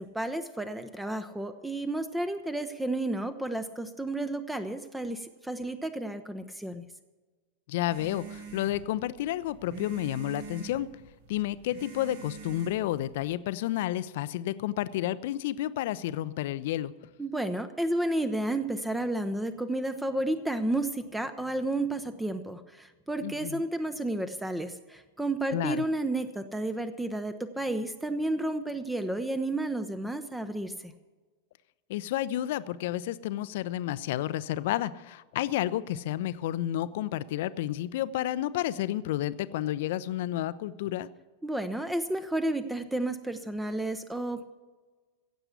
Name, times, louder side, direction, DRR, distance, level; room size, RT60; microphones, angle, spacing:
voice 1, 0.0-6.9 17.2-30.9 41.4-44.4, right 1 dB, 5° right, 10 dB, 0.7 m, -31 dB
voice 2, 7.7-10.9 11.3-16.9 23.2-23.6 25.5-25.8 31.9-41.1, left 13 dB, 55° left, 17 dB, 0.5 m, -31 dB
sound 1, 7.9-13.3, right 6 dB, 60° right, 2.5 m, -45 dB
16.0 x 7.9 x 8.1 m, 1.3 s
figure-of-eight pair, 90°, 0 cm